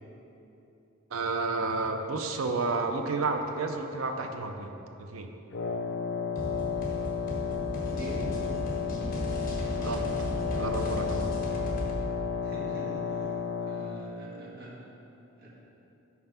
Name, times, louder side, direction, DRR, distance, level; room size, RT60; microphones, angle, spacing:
voice 1, 1.1-4.7 5.0-5.3 9.8-10.3 10.5-11.3, right 3 dB, 85° right, 6 dB, 0.5 m, -31 dB
Wind instrument woodwind instrument, 5.5-14.1, left 6 dB, 65° left, 0.5 m, -32 dB
sound 1, 6.3-12.0, equal, 45° left, 1.1 m, -35 dB
voice 2, 7.9-8.4 12.4-14.8 15.4-15.5, equal, 50° right, -6 dB, 1.5 m, -44 dB
5.8 x 4.6 x 5.4 m, 2.9 s
head